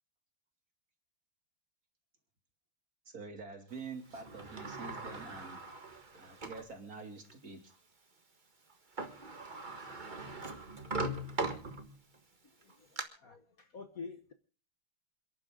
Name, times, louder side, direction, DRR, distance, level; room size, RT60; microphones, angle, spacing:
voice 1, 3.1-5.6 6.1-7.7, right 4 dB, 45° right, 3.2 m, -46 dB
Sliding door, 4.1-6.7 7.3-7.4 8.7-8.8 9.0-12.1 12.6-13.0, right 2 dB, 25° right, 1.6 m, -40 dB
voice 2, 12.6-14.3, left 4 dB, 50° left, 1.5 m, -48 dB
28.0 x 11.0 x 3.8 m
omnidirectional pair, 2.3 m